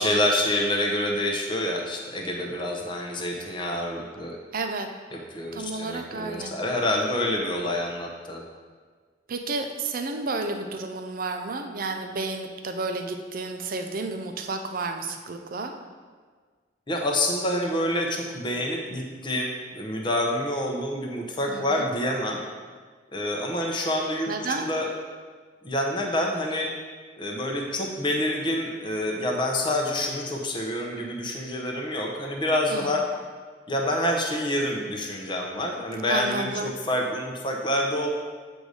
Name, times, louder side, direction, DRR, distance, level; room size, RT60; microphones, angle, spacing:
voice 1, 0.0-4.4 5.3-8.4 16.9-22.4 23.1-24.3 24.6-24.9 25.6-26.7 27.2-33.1 33.7-38.1, left 1 dB, 25° left, 0 dB, 0.7 m, -27 dB
voice 2, 4.5-4.9 5.5-6.5 9.3-15.7 21.5-21.9 24.3-24.7 32.7-32.9 36.1-36.7, right 3 dB, 50° right, 5 dB, 0.5 m, -31 dB
7.8 x 2.6 x 4.8 m, 1.5 s
head